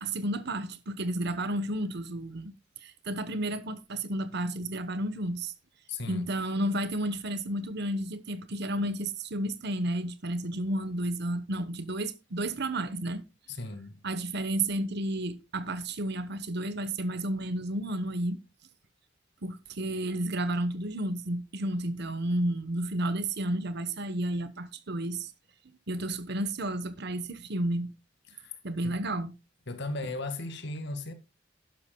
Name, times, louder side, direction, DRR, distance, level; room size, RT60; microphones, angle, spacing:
voice 1, 0.0-2.5 2.8-5.5 6.1-13.2 14.0-18.4 19.4-25.3 25.9-27.9 28.6-29.3, right 1 dB, 60° right, 1.1 m, -32 dB
voice 2, 5.9-6.3 13.5-14.0 28.3-28.6 28.8-29.0 29.7-31.1, left 2 dB, 65° left, 2.0 m, -36 dB
12.0 x 11.5 x 2.3 m
head